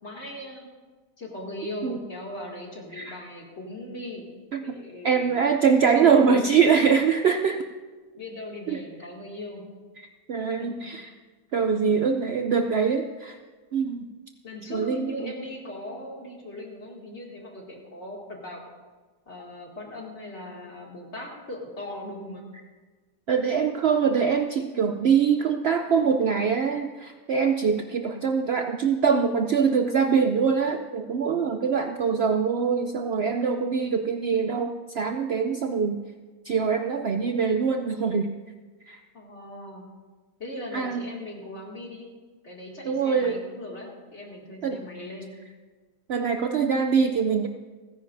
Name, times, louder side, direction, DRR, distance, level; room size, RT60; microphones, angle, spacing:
voice 1, 0.0-0.7 1.2-4.3 4.6-5.5 5.9-6.4 6.7-6.8 7.1-7.5 8.1-9.6 10.6-10.8 14.4-18.6 19.3-22.4 39.1-39.8 40.4-42.1 42.4-45.3, left 1 dB, 40° left, -2 dB, 2.6 m, -39 dB
voice 2, 5.0-7.6 8.7-8.8 10.3-11.1 11.5-13.4 13.7-14.1 14.7-15.3 23.3-36.0 36.4-38.3 38.9-39.0 40.7-41.0 42.8-43.4 44.6-44.8 46.1-47.5, right 6 dB, 85° right, 6 dB, 0.5 m, -23 dB
30.0 x 10.0 x 2.6 m, 1.3 s
omnidirectional pair, 1.8 m